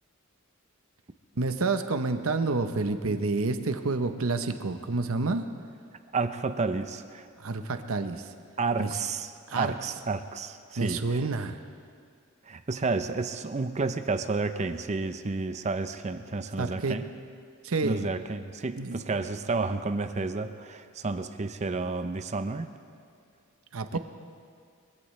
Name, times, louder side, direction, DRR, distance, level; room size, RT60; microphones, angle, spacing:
voice 1, 1.4-5.5 7.4-8.2 8.8-8.9 9.5-9.7 10.8-11.6 16.6-17.0 17.6-18.0 18.8-19.0 23.7-24.0, right 3 dB, 75° right, 8 dB, 0.8 m, -29 dB
voice 2, 6.1-7.3 8.6-11.2 12.5-17.1 17.8-22.7 23.9-24.0, right 3 dB, 35° right, 10 dB, 0.6 m, -31 dB
23.0 x 16.0 x 3.2 m, 2.2 s
head